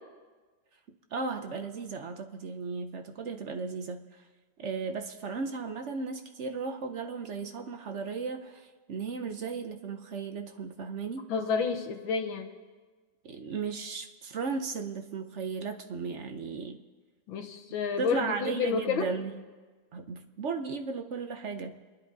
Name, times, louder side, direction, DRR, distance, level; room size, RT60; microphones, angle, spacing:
voice 1, 1.1-4.3 4.6-11.3 13.2-16.8 18.0-19.4 19.9-21.8, right 4 dB, 55° right, 6 dB, 0.8 m, -35 dB
voice 2, 11.3-12.5 17.3-19.1, left 6 dB, 85° left, 5 dB, 1.9 m, -30 dB
29.5 x 10.5 x 4.0 m, 1.4 s
omnidirectional pair, 2.1 m